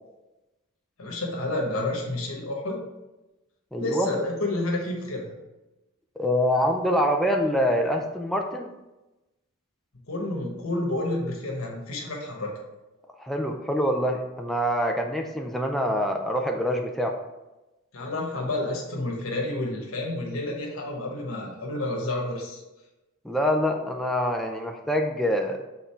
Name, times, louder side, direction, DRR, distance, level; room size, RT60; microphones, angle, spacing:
voice 1, 1.0-2.8 3.8-5.3 10.1-12.6 17.9-22.6, left 2 dB, 75° left, -1 dB, 1.3 m, -30 dB
voice 2, 3.7-4.1 6.2-8.7 13.2-17.1 23.2-25.6, equal, ahead, 1 dB, 0.4 m, -25 dB
6.3 x 4.0 x 4.4 m, 1.0 s
head